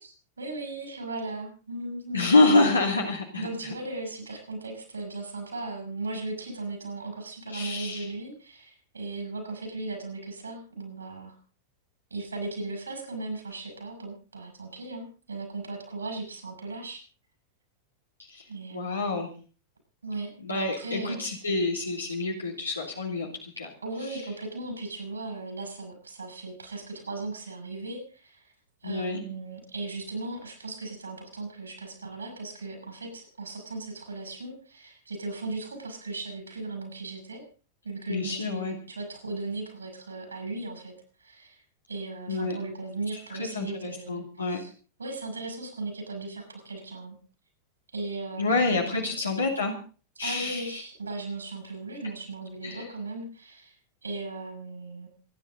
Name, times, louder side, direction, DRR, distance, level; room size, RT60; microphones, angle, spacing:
voice 1, 0.4-2.3 3.4-11.4 12.1-17.0 18.5-19.0 20.0-21.3 23.8-28.5 28.8-37.4 37.8-40.9 41.2-41.6 41.9-44.7 45.0-47.2 47.9-49.0 50.2-53.8 54.0-55.1, right 2 dB, 75° right, 4 dB, 7.3 m, -37 dB
voice 2, 2.1-3.7 7.5-8.1 18.3-18.4 18.7-19.3 20.4-23.7 28.8-29.2 38.1-38.8 42.3-42.6 43.1-44.6 48.4-49.8 50.2-50.8 52.6-52.9, left 3 dB, 80° left, -1 dB, 2.7 m, -27 dB
27.0 x 10.5 x 4.0 m, 0.39 s
figure-of-eight pair, 90°, 0 cm